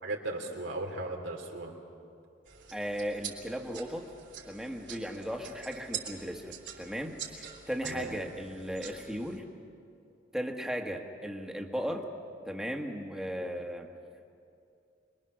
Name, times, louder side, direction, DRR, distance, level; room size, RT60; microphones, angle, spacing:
voice 1, 0.0-1.7 7.8-8.1, right 2 dB, 85° right, 1 dB, 3.3 m, -36 dB
sound 1, 2.5-9.4, right 8 dB, 65° right, 3.6 m, -45 dB
voice 2, 2.7-4.1 4.5-9.4 10.3-12.1 12.4-13.9, equal, 5° right, 2 dB, 1.6 m, -36 dB
26.5 x 22.0 x 6.4 m, 2.5 s
head